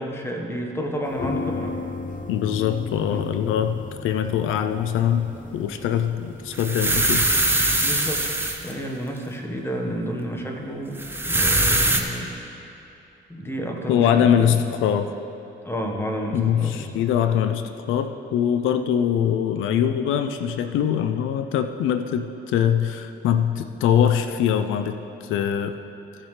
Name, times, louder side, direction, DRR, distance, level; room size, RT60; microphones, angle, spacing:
voice 1, 0.0-1.8 3.1-3.3 7.8-8.2 8.6-12.3 13.3-14.6 15.6-17.0, equal, 10° left, 1 dB, 1.3 m, -30 dB
sound 1, 1.1-7.0, left 3 dB, 40° left, 0.8 m, -34 dB
voice 2, 2.3-7.3 13.9-15.1 16.3-25.8, left 9 dB, 85° left, 9 dB, 0.5 m, -23 dB
sound 2, 6.5-8.7 11.0-12.0, right 2 dB, 10° right, 0.9 m, -22 dB
16.0 x 7.2 x 3.3 m, 2.9 s
cardioid pair, 90°, 20 cm